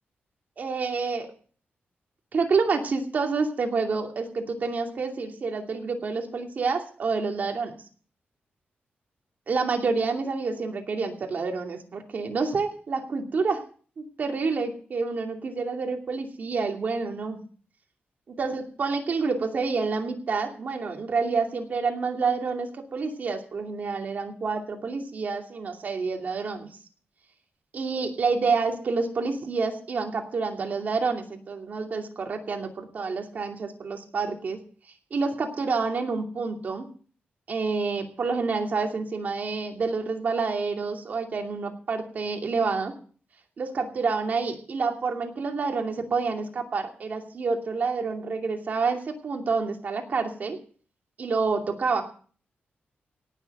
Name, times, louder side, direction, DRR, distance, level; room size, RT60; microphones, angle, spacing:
voice 1, 0.6-1.3 2.3-7.7 9.5-13.6 14.0-17.4 18.4-26.7 27.7-34.6 35.1-36.9 37.5-42.9 43.6-50.6 51.2-52.0, right 4 dB, 45° right, 2 dB, 2.6 m, -28 dB
18.0 x 7.2 x 7.8 m, 0.44 s
wide cardioid pair, 175°, 4 cm